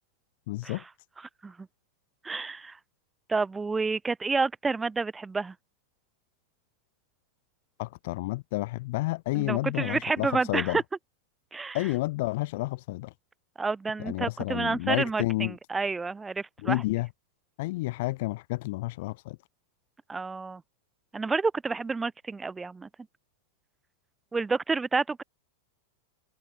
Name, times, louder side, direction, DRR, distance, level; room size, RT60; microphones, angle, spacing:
voice 1, 0.5-0.8 7.8-10.8 11.7-13.1 14.0-15.6 16.6-17.1 17.6-19.4, left 20 dB, 60° left, 1.6 m, -30 dB
voice 2, 2.2-2.8 3.3-5.5 9.3-10.8 11.5-11.8 13.6-16.8 20.1-20.6 21.1-22.9 24.3-25.2, right 4 dB, 10° right, 0.6 m, -29 dB
hypercardioid pair, 125°, 0 cm